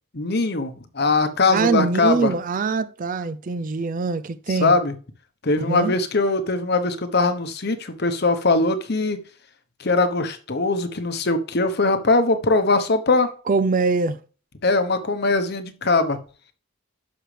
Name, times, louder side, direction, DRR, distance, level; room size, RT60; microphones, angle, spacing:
voice 1, 0.1-2.3 4.5-4.9 5.4-9.2 9.8-13.3 14.6-16.2, left 3 dB, 50° left, 1.0 m, -21 dB
voice 2, 1.5-4.7 5.6-5.9 13.5-14.2, right 4 dB, 40° right, 0.5 m, -23 dB
11.5 x 6.2 x 3.3 m
head